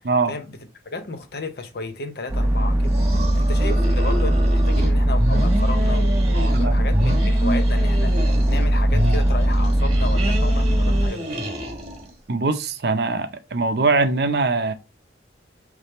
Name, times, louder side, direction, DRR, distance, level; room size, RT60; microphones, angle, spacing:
voice 1, 0.0-0.6 0.8-11.4, left 2 dB, 60° left, 0.7 m, -33 dB
sound 1, 2.3-11.1, right 1 dB, 15° right, 0.8 m, -19 dB
sound 2, 2.8-4.9 5.2-6.7 6.9-8.7 8.9-12.1, equal, 35° right, 1.4 m, -28 dB
voice 2, 6.3-6.9 12.3-14.7, right 3 dB, 60° right, 0.5 m, -22 dB
3.4 x 3.2 x 4.1 m
head